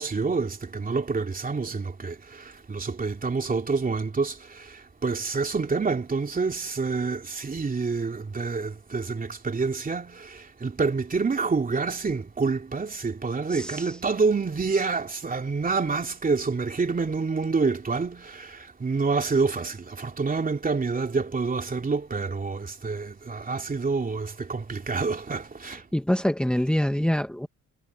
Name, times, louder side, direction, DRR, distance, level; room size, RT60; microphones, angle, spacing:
voice 1, 0.0-25.8, right 4 dB, 30° right, 2.9 m, -27 dB
voice 2, 13.5-13.8 25.9-27.5, equal, 5° left, 2.0 m, -25 dB
cardioid pair, 90°, 30 cm